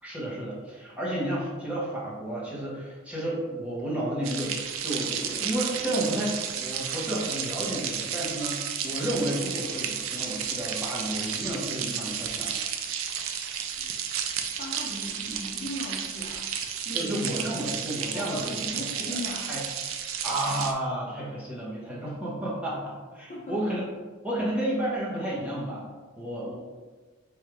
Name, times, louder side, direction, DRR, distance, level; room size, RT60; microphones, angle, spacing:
voice 1, 0.0-12.5 15.2-15.4 16.9-18.7 19.5-19.6 20.2-23.8 24.2-26.6, right 1 dB, 5° right, -7 dB, 1.1 m, -31 dB
sound 1, 4.2-20.7, right 8 dB, 90° right, 0.4 m, -32 dB
voice 2, 14.6-16.5 16.8-17.3 18.1-19.5 23.3-23.6, left 1 dB, 35° left, -6 dB, 0.7 m, -38 dB
3.4 x 2.7 x 4.5 m, 1.3 s
head